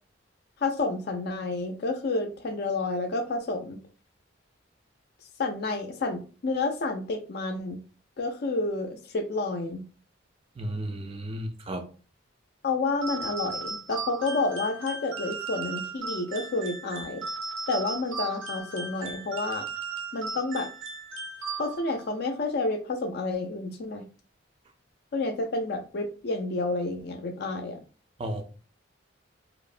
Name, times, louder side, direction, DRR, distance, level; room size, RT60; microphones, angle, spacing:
voice 1, 0.6-3.8 5.4-7.8 8.2-9.8 12.6-17.2 17.7-19.6 20.1-20.7 21.6-24.0 25.1-27.8, left 3 dB, 55° left, 0.4 m, -30 dB
voice 2, 10.6-11.8 28.2-28.4, right 1 dB, 25° right, 0.3 m, -33 dB
sound 1, 13.0-22.0, right 4 dB, 75° right, 0.5 m, -36 dB
2.8 x 2.0 x 2.4 m
head